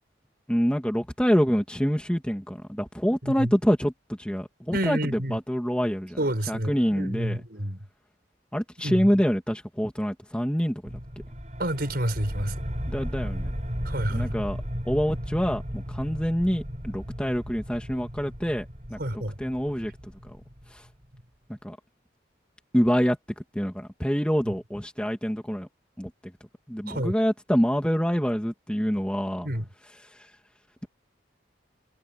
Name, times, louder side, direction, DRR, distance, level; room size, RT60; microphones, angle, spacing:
voice 1, 0.5-6.2 6.5-7.4 8.5-10.8 12.9-13.5 14.1-14.6 14.8-19.9 20.2-20.4 20.7-20.8 21.6-21.8 22.7-23.2 23.5-25.7 26.0-26.1 26.7-29.5, equal, 5° left, 2.6 m, -26 dB
voice 2, 4.7-5.4 6.2-7.8 8.8-9.1 11.6-12.5 13.8-14.3 19.0-19.3 26.9-27.1 29.4-29.7, right 1 dB, 55° right, 6.0 m, -29 dB
sound 1, 10.8-21.0, equal, 40° right, 6.8 m, -35 dB
head